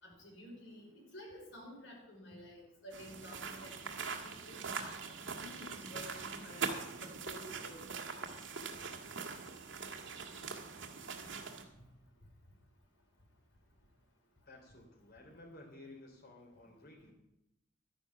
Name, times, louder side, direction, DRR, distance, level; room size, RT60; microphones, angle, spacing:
voice 1, 0.0-5.0 5.4-6.7 7.0-7.8, left 1 dB, 80° left, -1 dB, 4.9 m, -52 dB
sound 1, 2.9-11.6, right 5 dB, 85° right, 1.8 m, -42 dB
voice 2, 14.5-17.1, left 2 dB, 55° left, 2 dB, 3.5 m, -54 dB
12.5 x 10.0 x 5.9 m, 0.88 s
head